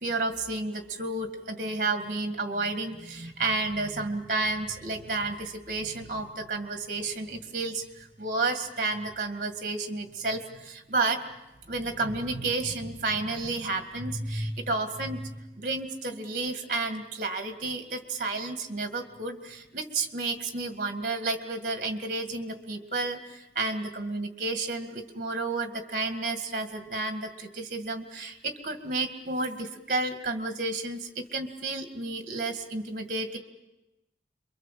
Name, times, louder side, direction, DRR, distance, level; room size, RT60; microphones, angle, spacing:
voice 1, 0.0-11.2 11.7-15.3 15.6-33.4, right 3 dB, 45° right, 7 dB, 2.0 m, -31 dB
27.5 x 23.0 x 7.5 m, 0.97 s
head